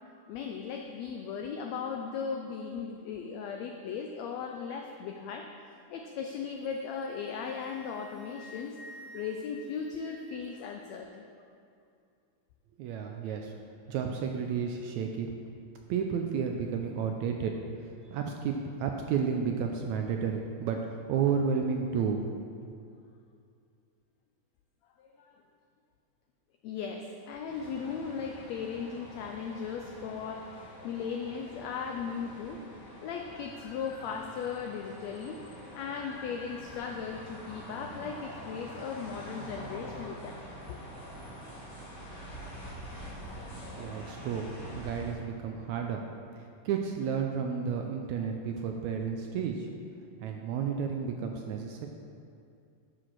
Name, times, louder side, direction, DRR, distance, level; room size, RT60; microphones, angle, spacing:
voice 1, 0.3-11.3 25.0-25.3 26.6-32.7 33.0-35.4 35.7-40.4 40.7-40.8, left 6 dB, 85° left, 3 dB, 1.5 m, -37 dB
Wind instrument woodwind instrument, 6.6-10.5, equal, 10° left, 1.6 m, -51 dB
voice 2, 12.8-13.5 13.9-15.4 15.9-22.6 43.7-46.0 46.4-49.7 50.2-51.9, right 6 dB, 80° right, 3 dB, 1.7 m, -32 dB
sound 1, 27.5-45.1, equal, 30° left, 2.3 m, -46 dB
9.9 x 5.0 x 6.0 m, 2.4 s
omnidirectional pair, 3.7 m